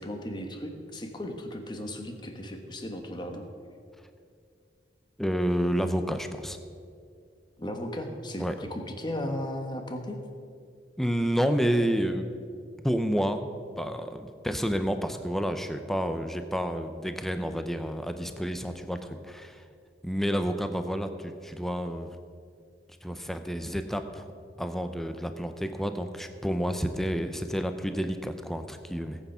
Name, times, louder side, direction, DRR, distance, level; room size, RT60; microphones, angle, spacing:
voice 1, 0.0-3.5 7.6-10.2, left 1 dB, 25° left, 4 dB, 1.3 m, -36 dB
voice 2, 5.2-6.6 8.4-8.6 11.0-12.3 12.8-13.4 13.8-19.6 20.0-22.2 23.0-24.3 24.6-29.2, equal, ahead, 7 dB, 0.7 m, -29 dB
18.0 x 8.5 x 5.7 m, 2.3 s
head